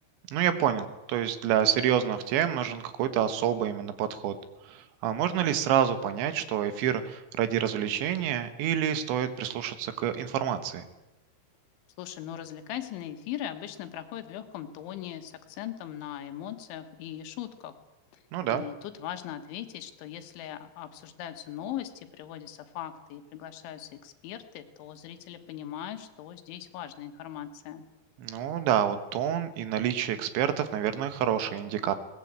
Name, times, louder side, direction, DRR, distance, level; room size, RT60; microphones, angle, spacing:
voice 1, 0.3-4.4 4.7-10.8 18.3-18.6 28.2-32.0, right 10 dB, 75° right, 11 dB, 3.5 m, -28 dB
voice 2, 12.0-17.7 18.5-27.9, left 11 dB, 80° left, 9 dB, 3.7 m, -39 dB
21.0 x 19.0 x 8.8 m, 1.0 s
omnidirectional pair, 5.5 m